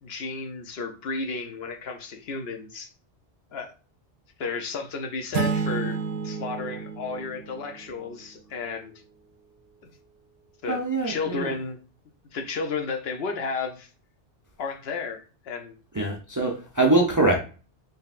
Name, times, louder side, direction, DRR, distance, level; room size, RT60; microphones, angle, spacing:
voice 1, 0.0-2.9 3.5-3.7 4.4-8.9 9.8-9.9 10.6-11.8 12.3-13.9 14.6-15.8, left 4 dB, 65° left, 0.8 m, -33 dB
sound 1, 5.3-8.1, right 5 dB, 70° right, 0.8 m, -30 dB
voice 2, 10.7-11.5 15.9-17.4, right 2 dB, 25° right, 0.4 m, -23 dB
4.0 x 3.8 x 2.4 m
omnidirectional pair, 1.2 m